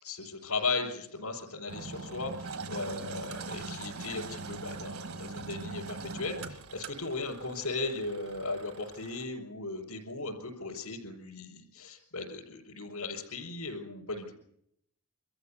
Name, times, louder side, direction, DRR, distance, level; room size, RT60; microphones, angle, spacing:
voice 1, 0.0-14.2, left 3 dB, 80° left, -3 dB, 5.1 m, -37 dB
Engine, 1.7-9.2, right 3 dB, 75° right, 1.4 m, -42 dB
25.0 x 14.0 x 9.8 m, 0.77 s
head